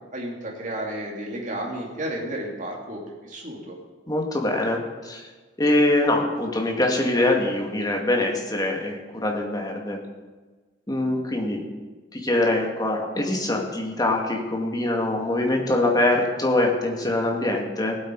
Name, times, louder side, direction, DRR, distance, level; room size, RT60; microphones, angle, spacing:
voice 1, 0.1-3.8, right 1 dB, 45° right, 0 dB, 2.6 m, -32 dB
voice 2, 4.1-5.2 5.6-10.0 10.9-11.6 12.1-18.0, left 1 dB, 20° left, 1 dB, 1.9 m, -23 dB
18.0 x 8.1 x 4.7 m, 1.3 s
head